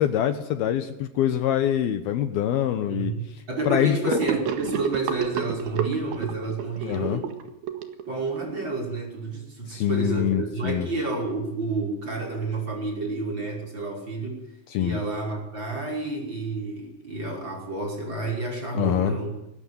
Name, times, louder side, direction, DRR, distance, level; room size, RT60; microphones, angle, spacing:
voice 1, 0.0-3.1 3.7-4.2 6.8-7.2 9.7-10.9 14.7-15.0 18.7-19.2, left 10 dB, 70° left, 9 dB, 2.9 m, -24 dB
voice 2, 2.9-3.2 3.5-7.3 8.1-14.4 14.7-19.4, right 3 dB, 25° right, 0 dB, 6.2 m, -30 dB
Gurgling / Sink (filling or washing), 4.1-8.5, right 9 dB, 70° right, 3.5 m, -30 dB
20.5 x 19.0 x 9.6 m, 0.83 s
omnidirectional pair, 4.8 m